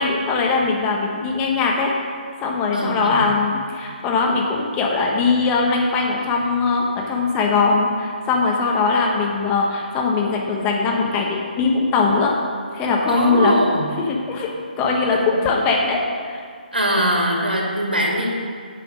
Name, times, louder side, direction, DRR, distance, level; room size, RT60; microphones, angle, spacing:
voice 1, 0.0-1.9 2.4-12.3 12.7-13.5 14.1-16.4, left 4 dB, 20° left, -1 dB, 1.1 m, -20 dB
voice 2, 2.7-3.2 13.1-13.8 14.8-15.4 16.7-18.3, right 1 dB, 80° right, -2 dB, 2.5 m, -22 dB
9.0 x 5.7 x 6.4 m, 2.1 s
figure-of-eight pair, 140°, 5 cm